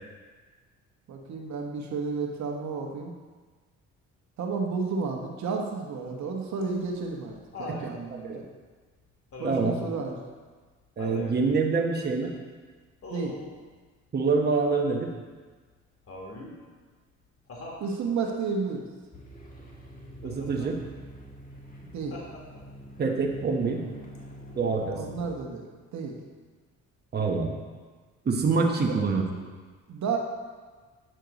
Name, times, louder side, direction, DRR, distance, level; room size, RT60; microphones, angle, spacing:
voice 1, 1.1-3.1 4.4-8.5 9.4-10.2 13.1-13.4 17.8-18.9 21.8-22.2 24.9-25.6 25.9-26.2 28.9-29.0 29.9-30.2, right 4 dB, 65° right, 1 dB, 1.2 m, -32 dB
Laughter, 6.6-7.9 9.3-9.8 11.0-11.4 13.0-13.5 16.1-16.6 17.5-17.9 20.2-20.7 22.1-22.8 24.1-24.2, left 2 dB, 45° left, 1.8 m, -41 dB
voice 2, 7.7-8.4 9.4-9.7 11.0-12.3 14.1-15.1 20.2-20.8 23.0-23.8 24.6-25.0 27.1-27.6 28.2-29.2, right 4 dB, 35° right, 1 dB, 1.0 m, -26 dB
sound 1, 19.1-25.3, equal, 25° left, 1.7 m, -45 dB
9.1 x 6.4 x 4.0 m, 1.4 s
cardioid pair, 90°, 30 cm